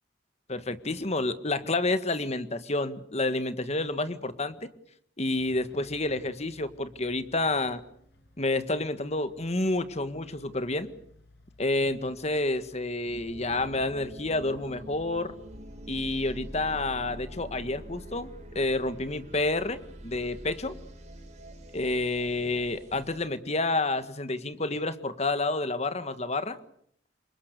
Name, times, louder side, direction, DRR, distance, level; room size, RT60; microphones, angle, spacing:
voice 1, 0.5-4.7 5.2-7.8 8.4-10.9 11.6-15.3 15.9-18.3 18.5-20.7 21.7-26.6, left 2 dB, 35° left, 11 dB, 1.7 m, -29 dB
sound 1, 5.4-16.4, left 1 dB, 60° left, 6.5 m, -57 dB
sound 2, 13.2-23.3, equal, 40° right, 5.4 m, -45 dB
28.0 x 24.0 x 6.8 m, 0.66 s
head